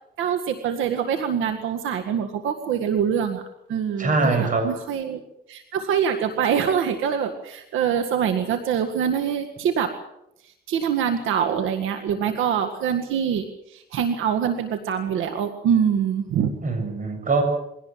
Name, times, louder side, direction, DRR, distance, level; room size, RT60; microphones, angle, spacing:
voice 1, 0.2-3.4 3.7-5.2 5.5-9.9 10.7-16.5, right 8 dB, 85° right, 7 dB, 1.9 m, -24 dB
voice 2, 4.0-4.7 16.6-17.4, right 3 dB, 40° right, 6 dB, 7.4 m, -22 dB
22.5 x 17.5 x 7.5 m, 0.81 s
cardioid pair, 90°, 20 cm